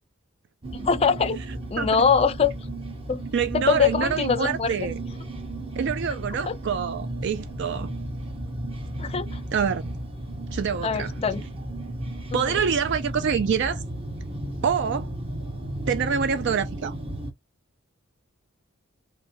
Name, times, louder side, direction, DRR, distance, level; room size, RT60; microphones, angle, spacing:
sound 1, 0.6-17.3, right 1 dB, 30° right, 0.8 m, -34 dB
voice 1, 0.7-1.4 1.7-2.5 3.1-3.2 3.7-4.7 6.5-6.6 9.0-9.4 10.8-11.4 12.3-12.4, left 6 dB, 30° left, 0.4 m, -23 dB
voice 2, 3.3-4.9 5.8-7.9 9.5-9.9 10.5-11.1 12.3-13.8 14.6-15.1 15.9-17.0, right 6 dB, 60° right, 0.4 m, -26 dB
3.4 x 2.2 x 2.6 m
head